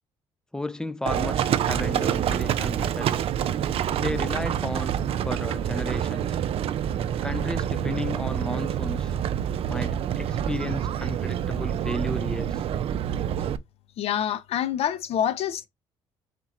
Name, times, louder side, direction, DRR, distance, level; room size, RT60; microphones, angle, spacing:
voice 1, 0.5-3.2 4.0-5.0 5.3-6.4 7.2-9.1 9.7-12.6, left 1 dB, 5° left, 0.5 m, -33 dB
Livestock farm animals working animals, 1.1-13.6, right 9 dB, 55° right, 0.5 m, -27 dB
voice 2, 14.0-15.7, left 10 dB, 60° left, 0.7 m, -26 dB
4.4 x 2.9 x 3.7 m
hypercardioid pair, 65°, 12 cm